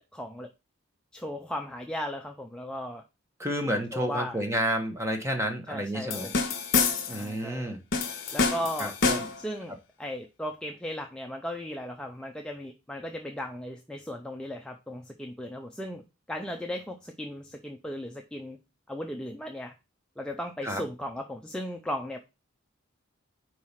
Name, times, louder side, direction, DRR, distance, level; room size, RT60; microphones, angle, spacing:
voice 1, 0.1-0.5 1.1-3.0 3.9-4.5 5.7-6.3 7.1-7.7 8.3-9.0 9.4-16.0 16.3-18.6 18.9-19.7 20.2-22.2, left 1 dB, 5° left, 2 dB, 0.4 m, -36 dB
voice 2, 3.4-6.3 7.1-7.8 8.8-9.2 20.6-20.8, right 1 dB, 15° right, 5 dB, 1.1 m, -30 dB
sound 1, 6.1-7.3 7.9-9.5, left 4 dB, 50° left, 1.5 m, -27 dB
4.7 x 4.7 x 5.6 m, 0.26 s
head